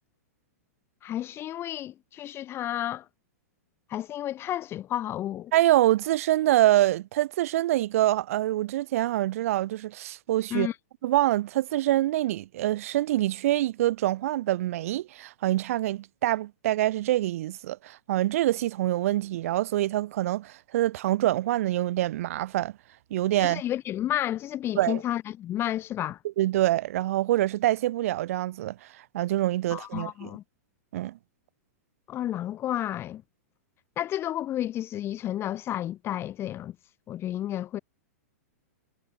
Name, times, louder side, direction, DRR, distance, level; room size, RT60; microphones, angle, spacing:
voice 1, 1.0-3.1 3.9-5.5 10.5-10.8 23.4-26.2 29.7-30.4 32.1-33.2 34.0-36.8 37.1-37.8, left 12 dB, 30° left, 5.5 m, -31 dB
voice 2, 5.5-10.7 11.0-22.7 23.1-23.6 24.7-25.0 26.4-28.8 29.1-30.3 30.9-31.2, right 14 dB, 65° right, 2.8 m, -25 dB
hypercardioid pair, 125°, 8 cm